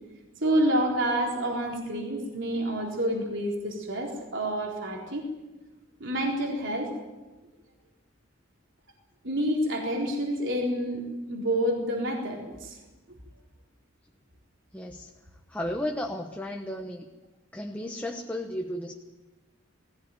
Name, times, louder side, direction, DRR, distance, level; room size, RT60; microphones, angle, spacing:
voice 1, 0.4-5.3 6.0-6.9 9.2-12.8, right 1 dB, 60° right, -1 dB, 4.2 m, -28 dB
voice 2, 14.7-15.1 15.5-17.1 17.5-18.9, left 1 dB, 5° left, 2 dB, 1.1 m, -34 dB
20.5 x 16.5 x 9.3 m, 1.2 s
head